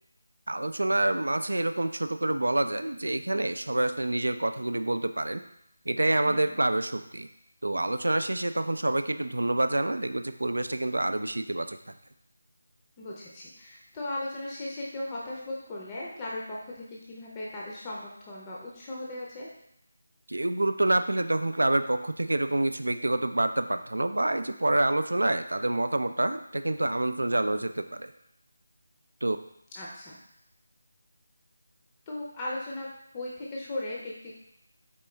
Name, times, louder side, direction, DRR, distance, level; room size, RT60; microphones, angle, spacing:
voice 1, 0.5-5.4 5.9-7.3 7.6-11.9 20.3-28.1 29.2-29.4, right 1 dB, 75° right, 10 dB, 0.3 m, -27 dB
voice 2, 6.2-6.6 13.0-19.5 29.7-30.2 32.1-32.9 33.1-34.4, left 1 dB, 20° left, -5 dB, 0.6 m, -37 dB
4.4 x 3.4 x 3.1 m, 0.76 s
figure-of-eight pair, 160°, 0 cm